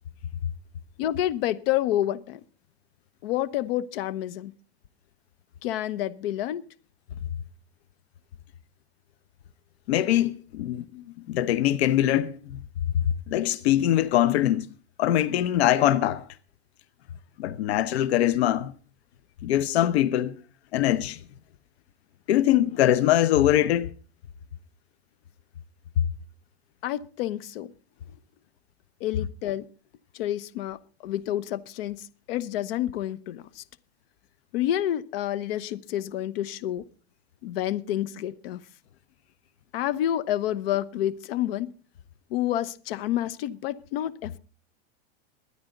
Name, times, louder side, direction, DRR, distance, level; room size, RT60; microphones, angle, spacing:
voice 1, 1.0-2.4 3.2-4.5 5.6-6.6 26.8-27.7 29.0-29.7 30.1-33.6 34.5-36.8 37.4-38.6 39.7-41.7 42.3-44.4, left 12 dB, 65° left, 1.1 m, -29 dB
voice 2, 9.9-12.6 12.9-14.7 15.0-16.2 17.4-18.7 19.4-20.4 20.7-21.2 22.3-23.9, left 12 dB, 85° left, 0.9 m, -23 dB
22.5 x 9.7 x 3.9 m
supercardioid pair, 150°, 31 cm